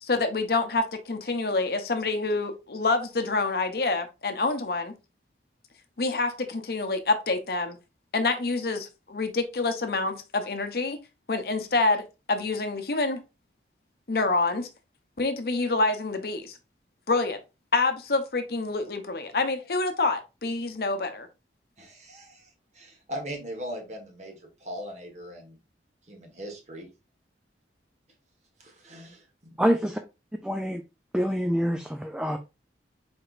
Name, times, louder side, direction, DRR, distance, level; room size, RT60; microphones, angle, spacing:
voice 1, 0.0-4.9 6.0-7.8 8.1-11.0 11.3-13.2 14.1-14.7 15.2-16.6 17.1-17.4 17.7-21.3, left 3 dB, 55° left, 0.8 m, -27 dB
voice 2, 21.8-25.6 26.1-26.9 28.6-29.5, equal, 40° right, 1.5 m, -40 dB
voice 3, 29.6-30.0 30.4-30.8 31.1-32.4, equal, 5° right, 0.3 m, -26 dB
4.8 x 4.3 x 2.5 m
head